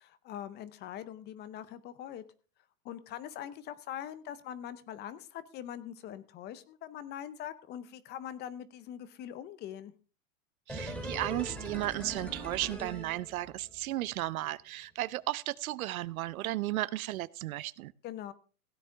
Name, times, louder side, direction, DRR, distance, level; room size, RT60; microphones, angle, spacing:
voice 1, 0.0-2.2 2.8-9.9 18.0-18.3, left 10 dB, 25° left, 0.6 m, -43 dB
sound 1, 10.7-13.8 14.1-14.2, right 1 dB, ahead, 2.7 m, -41 dB
voice 2, 10.7-17.9, right 15 dB, 70° right, 0.7 m, -34 dB
16.5 x 9.2 x 3.5 m
hypercardioid pair, 130°, 43 cm